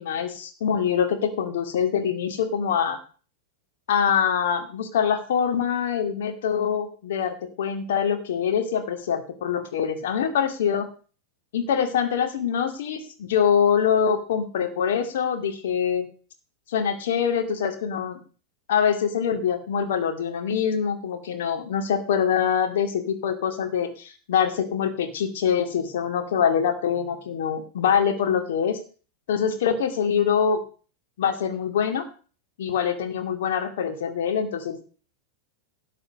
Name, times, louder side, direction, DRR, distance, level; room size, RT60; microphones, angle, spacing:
voice 1, 0.0-3.0 3.9-10.9 11.5-16.1 16.7-18.2 18.7-28.8 29.3-30.6 31.2-32.0 32.6-34.8, left 7 dB, 55° left, 6 dB, 2.3 m, -24 dB
12.5 x 7.6 x 6.7 m, 0.39 s
figure-of-eight pair, 90°, 0 cm